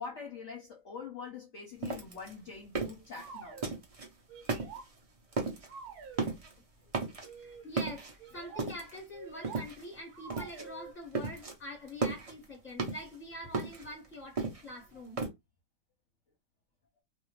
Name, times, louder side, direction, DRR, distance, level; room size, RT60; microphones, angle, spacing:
voice 1, 0.0-3.6, left 5 dB, 55° left, 0.9 m, -44 dB
sound 1, 1.8-4.1 4.4-5.0 5.3-5.7 6.0-6.6 6.9-7.4 7.8-9.0 9.4-10.0 10.3-10.7 10.9-11.5 11.9-13.2 13.5-15.3, right 4 dB, 45° right, 0.4 m, -35 dB
sound 2, 3.1-3.7 4.3-4.9 5.7-6.2 7.2-7.7 8.2-8.7 9.1-9.7 10.1-10.9, right 6 dB, 70° right, 1.2 m, -48 dB
voice 2, 7.4-15.2, left 1 dB, 10° left, 1.1 m, -45 dB
2.6 x 2.4 x 3.0 m
omnidirectional pair, 1.8 m